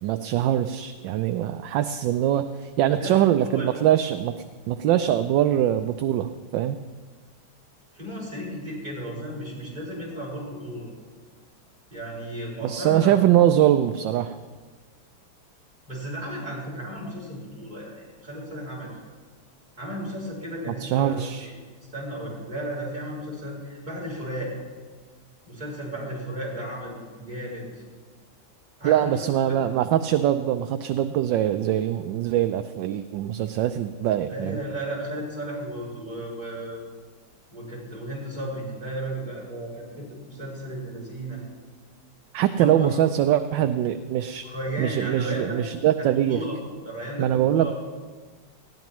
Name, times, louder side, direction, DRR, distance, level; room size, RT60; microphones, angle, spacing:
voice 1, 0.0-4.3 4.7-6.8 12.6-14.3 20.7-21.5 28.8-34.6 42.3-44.4 44.8-46.4 47.2-47.7, right 11 dB, 75° right, 9 dB, 1.2 m, -23 dB
voice 2, 2.9-3.8 7.9-10.9 11.9-13.2 15.9-18.9 19.8-21.5 21.9-24.5 25.5-27.7 28.8-29.2 29.5-29.6 34.3-36.8 37.5-41.4 42.5-43.0 44.4-45.6 46.0-46.6 46.8-47.7, right 1 dB, 20° right, -5 dB, 6.1 m, -34 dB
19.5 x 16.0 x 3.1 m, 1.4 s
omnidirectional pair, 2.1 m